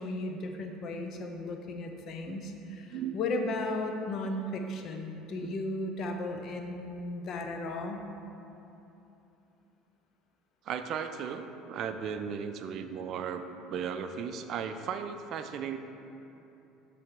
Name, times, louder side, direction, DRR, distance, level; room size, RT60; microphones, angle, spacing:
voice 1, 0.0-8.0, left 2 dB, 55° left, 4 dB, 0.6 m, -35 dB
voice 2, 2.9-3.2 5.3-5.5 10.6-15.8, right 7 dB, 55° right, 8 dB, 0.4 m, -36 dB
7.1 x 3.4 x 4.7 m, 2.9 s
hypercardioid pair, 75°, 0 cm